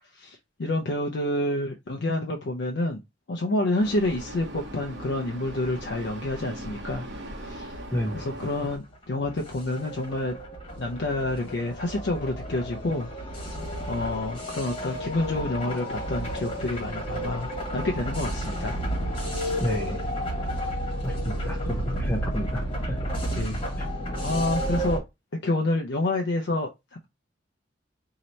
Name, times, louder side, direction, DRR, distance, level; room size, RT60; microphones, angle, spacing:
voice 1, 0.1-3.0 3.3-7.1 7.4-7.8 8.1-10.4 10.8-13.1 13.9-18.7 19.4-19.5 23.3-23.6 24.2-25.0 25.4-27.1, left 2 dB, 65° left, 0.5 m, -28 dB
Vehicle, 3.8-8.8, right 1 dB, 65° right, 1.0 m, -39 dB
voice 2, 7.9-8.2 19.6-20.0 21.0-22.6 22.9-23.0, equal, 10° left, 0.6 m, -30 dB
sound 1, 8.9-25.0, equal, 30° left, 1.5 m, -31 dB
3.1 x 2.8 x 4.0 m
head